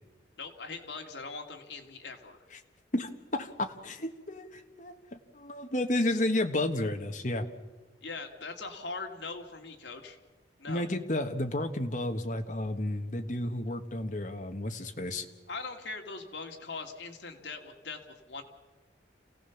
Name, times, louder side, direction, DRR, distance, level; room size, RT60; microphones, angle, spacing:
voice 1, 0.4-2.5 8.0-10.2 10.6-10.9 15.5-18.4, left 4 dB, 75° left, 4 dB, 2.4 m, -41 dB
voice 2, 2.9-7.5 10.7-15.2, left 1 dB, 45° left, 6 dB, 1.6 m, -32 dB
28.5 x 17.0 x 7.2 m, 1.2 s
head